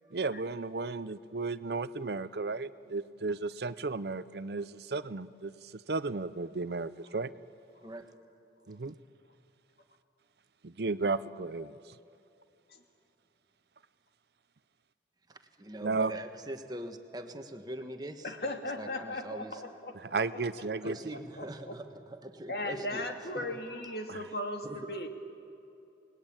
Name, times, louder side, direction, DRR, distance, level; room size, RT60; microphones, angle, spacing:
voice 1, 0.1-7.3 8.7-8.9 10.6-11.8 15.8-16.1 20.0-21.0 24.1-24.2, right 3 dB, 65° right, 15 dB, 0.6 m, -34 dB
voice 2, 15.3-18.3 18.8-19.6 20.8-23.1 23.3-24.3 24.6-25.1, right 1 dB, 20° right, 6 dB, 1.4 m, -43 dB
voice 3, 18.2-20.2 21.4-21.8 22.5-25.1, left 1 dB, 60° left, 4 dB, 2.3 m, -37 dB
28.5 x 20.0 x 8.8 m, 2.7 s
head